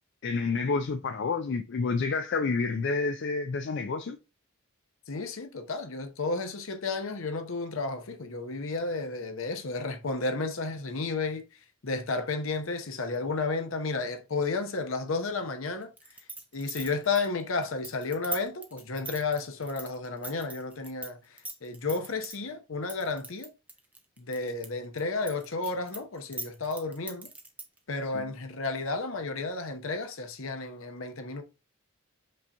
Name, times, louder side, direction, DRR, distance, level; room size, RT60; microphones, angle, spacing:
voice 1, 0.2-4.2 28.1-28.2, left 4 dB, 55° left, 0.4 m, -29 dB
voice 2, 5.1-15.9 16.5-23.5 24.2-27.3 27.9-31.4, left 3 dB, 70° left, 0.8 m, -32 dB
sound 1, 16.0-21.1 21.4-22.4 22.9-24.7 25.0-27.8, right 2 dB, 5° right, 0.5 m, -40 dB
5.3 x 2.8 x 3.4 m
head